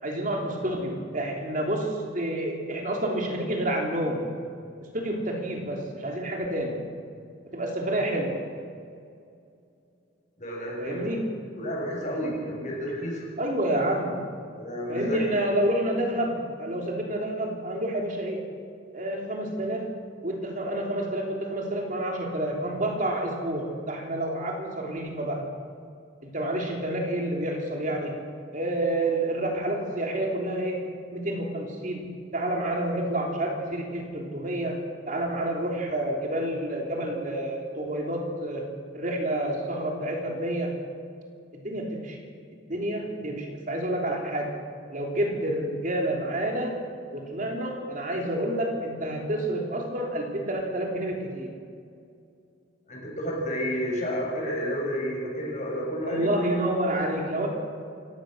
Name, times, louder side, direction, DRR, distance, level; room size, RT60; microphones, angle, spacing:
voice 1, 0.0-4.3 4.9-6.8 7.5-8.4 10.8-11.3 13.4-14.3 14.9-18.4 18.9-19.9 20.2-25.5 26.2-28.2 28.5-32.0 32.3-40.8 41.5-42.2 42.7-44.6 44.9-46.8 47.1-51.5 56.0-57.5, right 1 dB, 40° right, 0 dB, 3.2 m, -29 dB
voice 2, 10.4-11.1 11.6-13.3 14.5-15.2 52.9-56.3, equal, 35° left, -1 dB, 6.8 m, -31 dB
28.0 x 16.5 x 6.5 m, 2.4 s
head